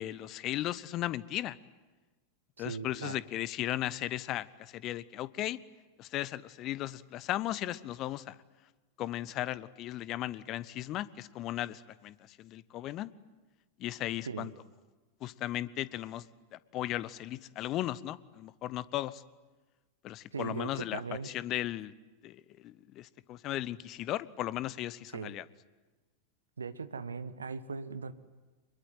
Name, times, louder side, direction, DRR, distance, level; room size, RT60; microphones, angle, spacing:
voice 1, 0.0-1.6 2.6-5.6 6.0-8.4 9.0-13.1 13.8-14.5 15.2-16.2 16.5-19.2 20.0-21.9 22.2-25.4, left 14 dB, 35° left, 19 dB, 0.8 m, -36 dB
voice 2, 2.6-3.2 14.2-14.5 20.3-21.3 25.1-25.3 26.6-28.1, right 5 dB, 75° right, 14 dB, 1.0 m, -39 dB
24.5 x 22.0 x 9.2 m, 1.2 s
figure-of-eight pair, 90°, 0 cm